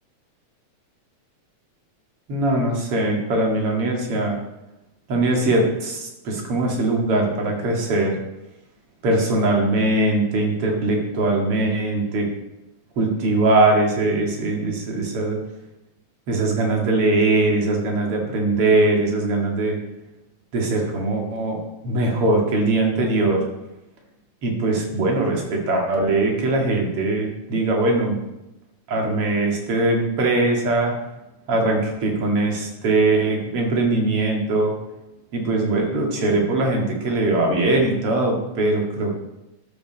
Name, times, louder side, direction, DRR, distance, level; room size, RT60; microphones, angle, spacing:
voice 1, 2.3-4.4 5.1-8.2 9.0-12.3 13.0-15.4 16.3-19.8 20.5-21.6 21.8-23.4 24.4-28.2 28.9-30.9 31.5-34.7 35.3-39.2, right 2 dB, 50° right, 1 dB, 2.8 m, -21 dB
12.5 x 9.2 x 4.0 m, 0.95 s
omnidirectional pair, 3.3 m